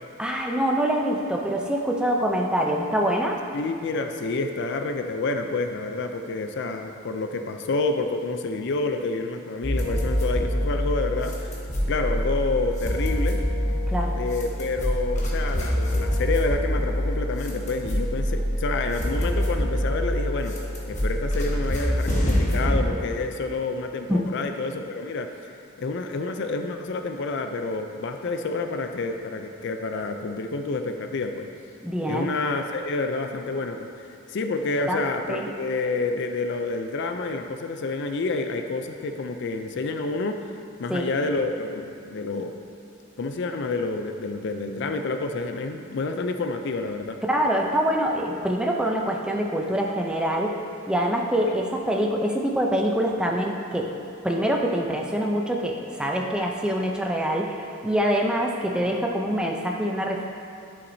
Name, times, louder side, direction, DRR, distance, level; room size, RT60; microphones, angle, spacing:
voice 1, 0.2-3.4 13.9-14.1 24.1-24.2 31.8-32.3 34.9-35.0 35.3-35.5 40.9-41.1 47.3-50.5 50.9-53.9 54.2-60.2, equal, 5° right, 0 dB, 0.5 m, -25 dB
voice 2, 3.5-11.6 11.9-13.4 14.1-20.5 20.9-25.5 25.8-31.5 32.1-40.4 40.8-42.5 43.2-47.2, left 3 dB, 55° left, 6 dB, 0.4 m, -28 dB
sound 1, 9.6-22.8, equal, 35° left, 1.1 m, -25 dB
11.0 x 5.8 x 2.7 m, 2.5 s
head